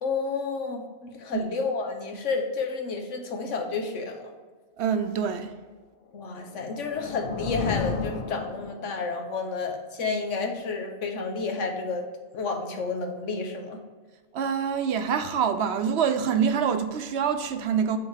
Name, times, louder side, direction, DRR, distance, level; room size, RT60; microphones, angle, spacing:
voice 1, 0.0-4.3 6.1-12.0 12.3-13.8, left 4 dB, 85° left, 1.3 m, -31 dB
voice 2, 4.8-5.5 14.3-18.0, right 7 dB, 70° right, 0.9 m, -25 dB
sound 1, 6.3-9.2, left 5 dB, 55° left, 0.7 m, -32 dB
7.1 x 4.2 x 4.9 m
omnidirectional pair, 1.2 m